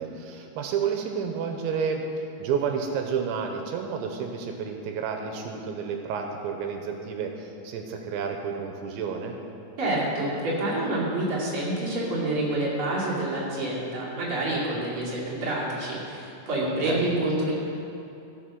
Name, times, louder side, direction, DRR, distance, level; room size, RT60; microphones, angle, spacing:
voice 1, 0.0-9.4 16.8-17.1, right 6 dB, 85° right, 4 dB, 2.9 m, -30 dB
voice 2, 9.8-17.5, right 1 dB, 35° right, -7 dB, 2.6 m, -27 dB
14.5 x 6.7 x 6.1 m, 2.7 s
omnidirectional pair, 5.4 m